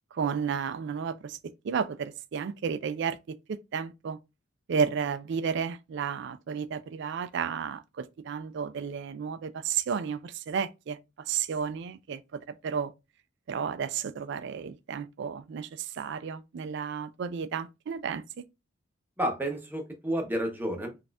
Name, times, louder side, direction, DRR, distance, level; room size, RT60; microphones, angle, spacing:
voice 1, 0.1-1.4 1.6-4.2 4.7-11.0 11.3-12.2 12.6-12.9 13.5-18.2, right 6 dB, 60° right, 0.3 m, -32 dB
voice 2, 19.2-21.0, equal, 10° right, 0.7 m, -31 dB
4.1 x 2.4 x 2.2 m
head